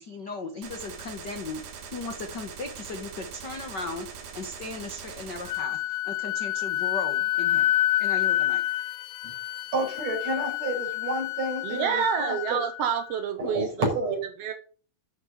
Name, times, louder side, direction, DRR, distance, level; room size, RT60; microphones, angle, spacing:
voice 1, 0.0-1.6 1.9-7.6 8.0-8.6, left 3 dB, 60° left, 5 dB, 1.1 m, -37 dB
Gunshot gunfire, 0.6-5.6, right 6 dB, 90° right, 4.0 m, -42 dB
Wind instrument woodwind instrument, 5.5-13.2, left 14 dB, 85° left, 2.7 m, -28 dB
voice 2, 9.7-12.6 13.4-14.2, right 2 dB, 45° right, 1 dB, 6.2 m, -30 dB
voice 3, 11.6-14.5, right 8 dB, 70° right, 7 dB, 1.5 m, -29 dB
11.0 x 6.6 x 7.3 m, 0.41 s
omnidirectional pair, 4.4 m